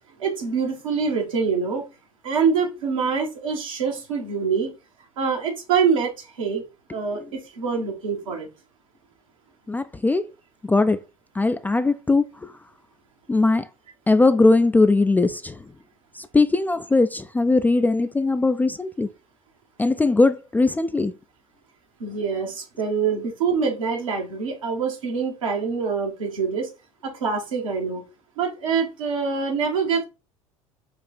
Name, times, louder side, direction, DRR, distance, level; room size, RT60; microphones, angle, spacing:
voice 1, 0.2-1.8 2.2-4.7 5.2-6.6 6.9-8.5 22.0-26.7 27.0-28.0 28.4-30.0, right 5 dB, 75° right, 1.4 m, -25 dB
voice 2, 9.7-10.3 10.6-11.0 11.3-12.5 13.3-13.7 14.1-15.6 16.1-19.1 19.8-21.1, left 3 dB, 10° left, 0.3 m, -20 dB
4.9 x 2.4 x 4.2 m
figure-of-eight pair, 70°, 17 cm